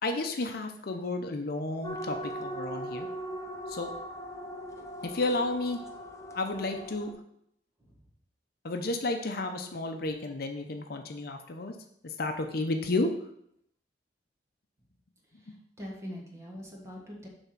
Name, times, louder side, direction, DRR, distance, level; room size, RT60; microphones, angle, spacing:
voice 1, 0.0-3.1 3.7-3.9 5.0-5.8 6.3-7.1 8.6-11.7 12.0-13.1, left 2 dB, 60° left, 5 dB, 0.7 m, -32 dB
sound 1, 1.8-7.1, equal, 20° left, 0.7 m, -39 dB
voice 2, 15.3-17.3, equal, 15° right, -1 dB, 1.6 m, -43 dB
7.0 x 3.6 x 5.8 m, 0.72 s
head